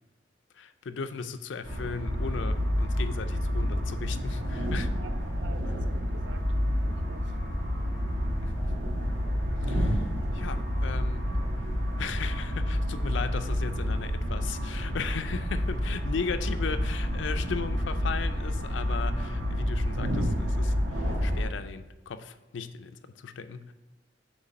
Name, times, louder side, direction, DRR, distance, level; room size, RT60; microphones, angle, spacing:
voice 1, 0.5-5.0 8.4-8.8 9.6-11.4 12.0-23.7, left 5 dB, 70° left, 0.4 m, -37 dB
sound 1, 1.6-21.4, equal, 90° right, 1.7 m, -29 dB
voice 2, 5.4-6.4 6.8-7.5, right 4 dB, 70° right, 0.5 m, -47 dB
7.9 x 3.2 x 5.3 m
head